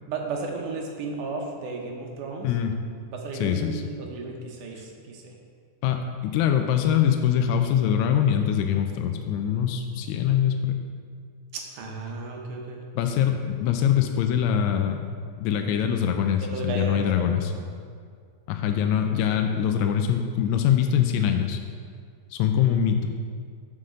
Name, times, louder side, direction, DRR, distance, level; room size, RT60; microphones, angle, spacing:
voice 1, 0.1-2.5 3.1-5.3 11.5-12.8 16.4-17.7, right 4 dB, 75° right, 1 dB, 2.4 m, -34 dB
voice 2, 2.4-2.7 3.3-3.8 5.8-10.8 12.9-15.0 15.4-17.5 18.5-21.6 22.3-23.1, left 9 dB, 85° left, 5 dB, 1.6 m, -23 dB
6.5 x 5.7 x 6.3 m, 2.1 s
omnidirectional pair, 3.8 m